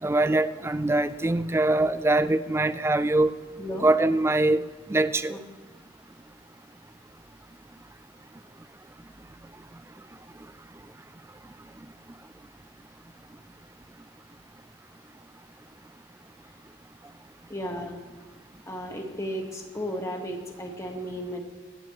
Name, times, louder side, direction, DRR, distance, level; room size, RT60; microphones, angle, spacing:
voice 1, 0.0-3.3 3.8-5.4, right 2 dB, 15° right, 14 dB, 0.4 m, -23 dB
voice 2, 3.6-3.9 5.3-5.4 17.5-18.0 18.7-21.4, equal, 15° left, 2 dB, 1.5 m, -34 dB
24.0 x 9.0 x 3.1 m, 1.3 s
head